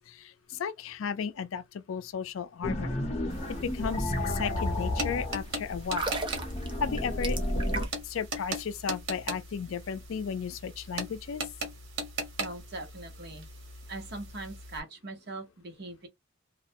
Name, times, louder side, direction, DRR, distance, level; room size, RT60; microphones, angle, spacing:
voice 1, 0.1-3.0 3.5-6.1 6.8-7.4 8.0-11.4, left 6 dB, 85° left, 0.4 m, -34 dB
sound 1, 2.6-7.9, left 1 dB, 35° left, 0.7 m, -32 dB
sound 2, 3.3-14.8, right 2 dB, 80° right, 1.1 m, -40 dB
sound 3, 5.8-8.1 8.4-8.6, right 3 dB, 25° right, 0.5 m, -36 dB
voice 2, 12.4-13.5 13.9-16.1, right 2 dB, 55° right, 0.9 m, -41 dB
2.3 x 2.1 x 2.7 m
head